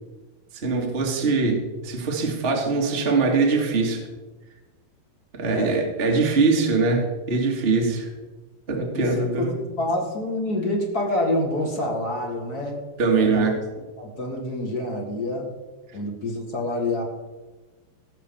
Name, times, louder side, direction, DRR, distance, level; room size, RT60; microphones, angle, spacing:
voice 1, 0.5-4.1 5.3-8.1 8.7-9.6 13.0-13.6 15.9-16.0, right 4 dB, 25° right, 1 dB, 1.4 m, -22 dB
voice 2, 5.4-5.8 8.9-12.8 13.2-13.5 14.0-15.5 15.9-17.0, left 1 dB, 40° left, 0 dB, 1.4 m, -27 dB
18.0 x 6.3 x 7.1 m, 1.2 s
omnidirectional pair, 4.8 m